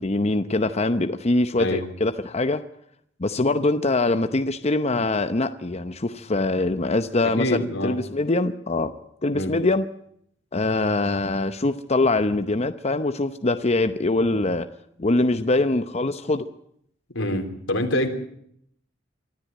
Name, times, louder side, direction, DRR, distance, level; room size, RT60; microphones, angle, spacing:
voice 1, 0.0-2.6 3.2-8.9 9.2-9.9 10.5-14.7 15.0-16.4, left 2 dB, 35° left, 9 dB, 0.8 m, -23 dB
voice 2, 7.2-8.0 9.3-9.6 17.1-18.1, left 1 dB, 85° left, 5 dB, 3.4 m, -25 dB
24.0 x 13.5 x 9.2 m, 0.71 s
head